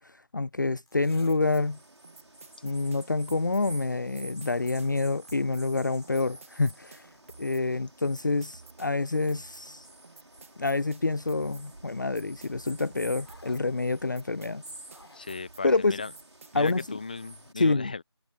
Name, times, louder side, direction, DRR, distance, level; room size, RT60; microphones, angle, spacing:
voice 1, 0.0-1.8 2.6-7.1 7.4-9.9 10.6-14.6 15.6-16.0 16.5-17.0 17.6-17.9, left 3 dB, 45° left, 0.5 m, -27 dB
sound 1, 0.7-1.5 1.9-2.0 4.3-7.4 8.4-12.0 13.2-13.7 14.8-15.4 16.4-16.5, left 2 dB, 75° left, 5.3 m, -60 dB
sound 2, 1.3-17.1, right 4 dB, 30° right, 2.7 m, -53 dB
sound 3, 1.4-17.5, right 1 dB, 85° right, 4.0 m, -50 dB
voice 2, 15.1-16.1 16.5-18.0, left 4 dB, 20° left, 0.9 m, -37 dB
figure-of-eight pair, 170°, 14 cm